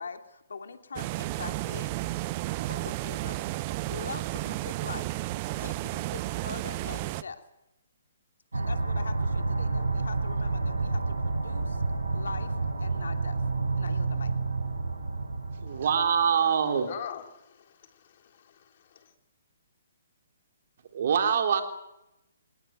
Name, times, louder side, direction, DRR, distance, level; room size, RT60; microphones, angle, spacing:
voice 1, 0.0-1.9 2.7-5.2 5.5-7.4 8.5-11.8 12.1-13.4 13.8-14.3, left 5 dB, 75° left, 7 dB, 2.8 m, -42 dB
sound 1, 1.0-7.2, right 18 dB, 35° right, 0.8 m, -33 dB
sound 2, 8.5-16.3, right 3 dB, 85° right, 5.7 m, -29 dB
voice 2, 15.6-16.9 20.9-21.6, right 7 dB, 55° right, 6 dB, 3.7 m, -24 dB
voice 3, 16.9-19.1, left 9 dB, 50° left, 5 dB, 3.7 m, -44 dB
25.5 x 18.5 x 9.4 m, 0.88 s
hypercardioid pair, 135°, 0 cm